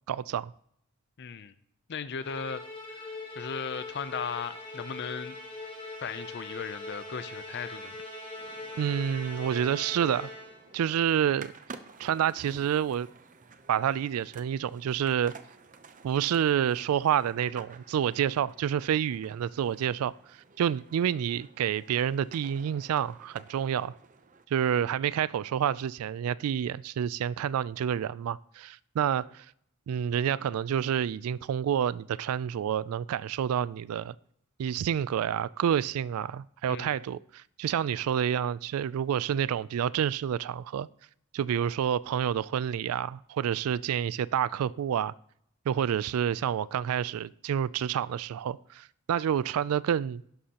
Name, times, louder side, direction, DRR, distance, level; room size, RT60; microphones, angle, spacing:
voice 1, 0.1-0.5 8.8-10.3 10.7-11.5 12.0-13.1 13.7-15.3 16.0-20.1 20.6-23.9 24.5-29.4 29.9-34.2 34.6-40.9 41.3-45.1 45.7-50.2, right 9 dB, 75° right, 0.3 m, -28 dB
voice 2, 1.2-1.5 1.9-2.6 2.9-3.0 3.4-5.4 6.0-8.0 36.7-37.0, left 6 dB, 50° left, 0.5 m, -37 dB
Musical instrument, 2.2-10.7, left 2 dB, 25° left, 1.6 m, -41 dB
sound 1, 8.4-24.4, right 4 dB, 35° right, 0.6 m, -52 dB
11.5 x 11.0 x 2.9 m
head